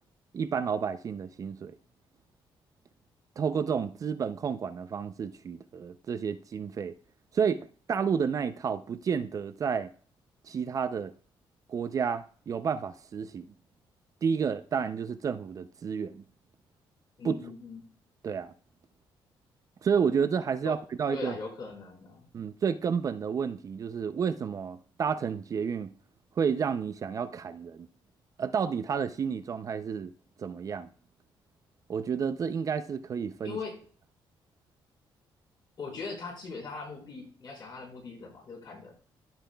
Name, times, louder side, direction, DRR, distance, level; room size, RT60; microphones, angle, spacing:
voice 1, 0.3-1.8 3.4-7.0 7.3-9.9 10.4-11.1 11.7-13.5 14.2-16.2 17.2-17.5 18.2-18.5 19.8-21.3 22.3-25.9 26.4-27.9 28.4-30.1 30.4-30.9 31.9-33.6, right 6 dB, 40° right, 0.4 m, -30 dB
voice 2, 17.2-17.8 20.6-20.8 21.1-22.3 33.4-33.7 35.8-38.9, left 4 dB, 55° left, 4.1 m, -40 dB
15.0 x 5.8 x 2.3 m
cardioid pair, 145°, 9 cm